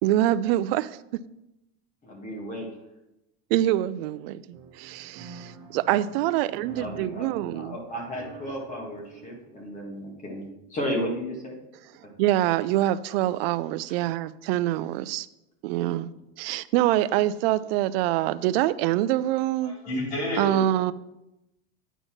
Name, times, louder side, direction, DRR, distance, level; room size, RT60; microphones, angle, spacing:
voice 1, 0.0-1.3 3.5-7.8 12.2-15.3 15.6-16.1 16.4-19.7 20.4-20.9, right 14 dB, 70° right, 17 dB, 0.5 m, -25 dB
voice 2, 2.0-2.7 6.7-11.6 12.0-12.1, equal, 25° left, 0 dB, 1.8 m, -34 dB
sound 1, 4.5-10.2, right 5 dB, 45° right, 1.6 m, -48 dB
voice 3, 19.6-20.6, left 1 dB, 85° left, -1 dB, 3.5 m, -29 dB
9.1 x 4.1 x 6.0 m, 0.89 s
supercardioid pair, 150°, 31 cm